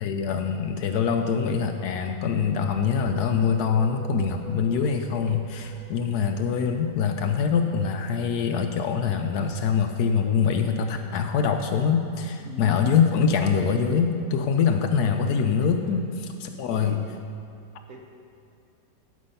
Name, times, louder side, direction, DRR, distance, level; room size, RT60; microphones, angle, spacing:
voice 1, 0.0-17.0, left 6 dB, 70° left, 6 dB, 1.0 m, -24 dB
sound 1, 2.3-9.9, right 4 dB, 75° right, 0.6 m, -46 dB
voice 2, 12.4-12.7 15.8-16.0 16.7-17.0 17.9-18.0, right 1 dB, 55° right, 1 dB, 1.2 m, -41 dB
11.5 x 5.2 x 5.5 m, 2.4 s
omnidirectional pair, 1.9 m